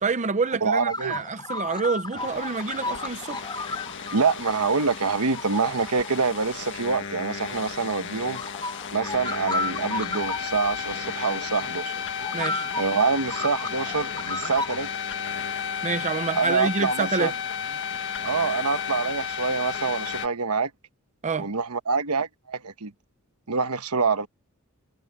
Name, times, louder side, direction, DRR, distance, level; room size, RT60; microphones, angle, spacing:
voice 1, 0.0-3.4 12.3-12.7 15.8-17.3 21.2-21.5, right 4 dB, 35° right, 0.7 m, -27 dB
voice 2, 0.6-1.2 4.1-8.4 8.9-11.9 12.8-14.9 16.3-17.3 18.2-20.7 21.4-22.9 23.5-24.3, right 4 dB, 80° right, 1.1 m, -26 dB
sound 1, 0.9-6.1 6.8-7.9 8.2-10.4 10.9-11.0 11.5-11.6 12.2-14.9, left 2 dB, 20° left, 3.5 m, -33 dB
sound 2, 2.1-20.3, left 7 dB, 60° left, 1.7 m, -33 dB
head